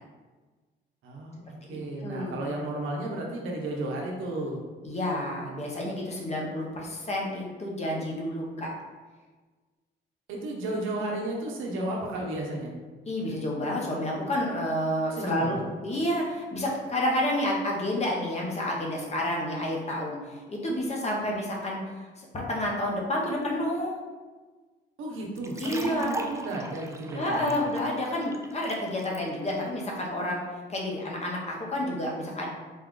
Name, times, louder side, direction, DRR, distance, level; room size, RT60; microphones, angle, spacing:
voice 1, 1.0-4.6 10.3-12.7 15.1-15.6 25.0-27.6, right 2 dB, 85° right, -1 dB, 0.9 m, -33 dB
voice 2, 1.6-2.4 4.8-8.7 13.1-21.8 22.2-24.0 25.6-26.1 27.1-30.4 30.7-32.5, left 1 dB, 35° left, -2 dB, 1.0 m, -30 dB
sound 1, 25.4-29.2, right 2 dB, 15° right, 0.4 m, -40 dB
4.2 x 2.4 x 3.7 m, 1.3 s
cardioid pair, 90°, 20 cm